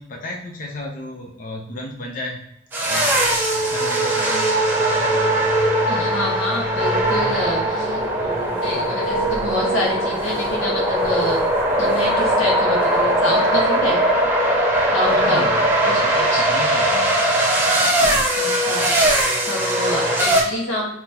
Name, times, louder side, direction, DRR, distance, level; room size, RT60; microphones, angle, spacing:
voice 1, 0.0-2.5 2.9-3.1 3.5-4.5 15.1-15.6 15.9-17.2, left 2 dB, 45° left, 1 dB, 0.6 m, -33 dB
sound 1, 2.7-20.4, right 1 dB, 10° right, 1.0 m, -20 dB
voice 2, 5.9-11.4 11.8-14.0 14.9-15.5 15.8-16.0 16.3-16.4 18.3-20.9, left 1 dB, 80° left, -4 dB, 1.4 m, -27 dB
5.7 x 2.9 x 2.8 m, 0.79 s
head